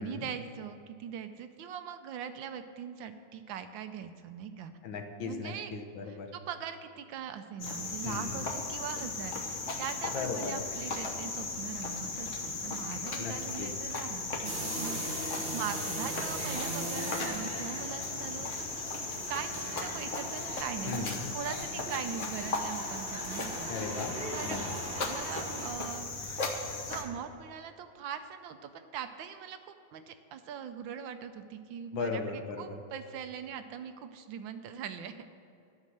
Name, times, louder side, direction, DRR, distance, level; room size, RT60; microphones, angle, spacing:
voice 1, 0.0-4.7 5.2-5.7 6.0-15.2 15.5-18.9 19.3-24.0 24.3-24.7 25.1-26.1 26.9-35.3, right 8 dB, 75° right, 9 dB, 1.3 m, -41 dB
voice 2, 4.8-6.3 8.0-8.5 10.1-10.6 13.2-13.7 20.9-21.3 23.7-24.1 24.4-24.7 31.9-32.8, left 5 dB, 70° left, 5 dB, 1.7 m, -37 dB
Cricket, 7.6-27.0, left 3 dB, 45° left, 1.2 m, -37 dB
sound 1, 14.4-25.7, right 2 dB, 30° right, 1.3 m, -40 dB
11.5 x 6.3 x 7.7 m, 2.5 s
omnidirectional pair, 2.3 m